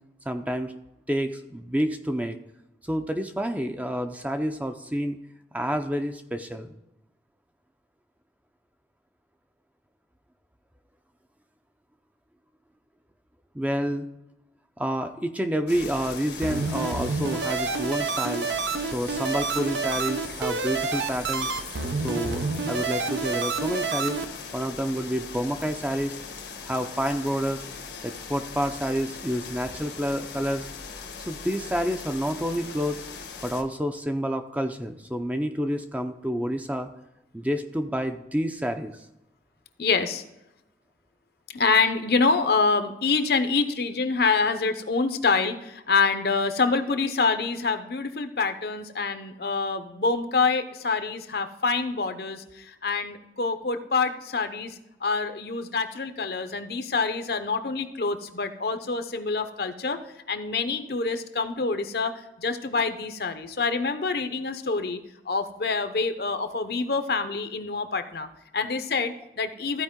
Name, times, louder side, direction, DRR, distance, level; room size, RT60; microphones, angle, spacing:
voice 1, 0.3-0.7 1.1-2.4 2.8-5.2 5.5-6.7 13.5-14.1 14.8-18.5 18.9-21.5 22.0-24.2 24.5-26.2 26.7-27.6 28.0-30.7 31.2-33.0 33.4-36.9 37.3-39.0, equal, 10° right, 6 dB, 0.5 m, -29 dB
sound 1, 15.7-33.6, left 5 dB, 80° left, 1.2 m, -40 dB
sound 2, 16.4-24.2, right 4 dB, 85° right, 0.7 m, -29 dB
voice 2, 39.8-40.2 41.5-60.0 60.3-65.0 65.3-69.8, left 4 dB, 60° left, 8 dB, 0.7 m, -26 dB
14.5 x 4.8 x 3.7 m, 0.90 s
head